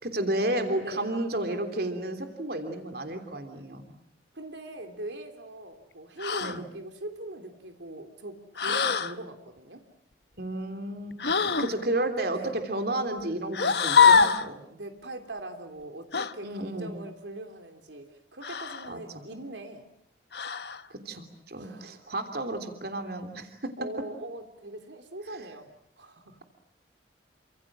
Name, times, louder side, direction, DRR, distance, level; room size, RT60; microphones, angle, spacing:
voice 1, 0.0-3.9 6.4-6.6 10.4-14.6 16.4-17.0 18.9-19.2 20.9-23.7 25.3-25.5, right 1 dB, 55° right, 6 dB, 3.2 m, -32 dB
voice 2, 4.3-9.8 12.3-12.5 14.0-14.3 14.7-19.8 21.5-21.9 23.8-25.7 26.0-26.4, right 1 dB, 80° right, 6 dB, 3.3 m, -41 dB
sound 1, 6.2-6.6 8.6-9.1 11.2-11.7 13.5-14.5 16.1-16.3 18.4-18.9 20.3-20.8, left 6 dB, 60° left, 1.1 m, -23 dB
29.5 x 26.5 x 7.6 m, 0.68 s
head